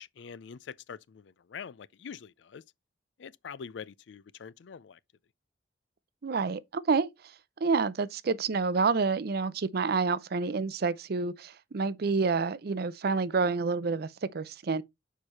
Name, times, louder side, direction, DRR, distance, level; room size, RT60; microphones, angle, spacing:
voice 1, 0.0-2.6 3.2-5.0, left 6 dB, 75° left, 0.4 m, -44 dB
voice 2, 6.2-7.1 7.6-14.8, right 4 dB, 60° right, 0.5 m, -28 dB
6.6 x 4.6 x 4.2 m
head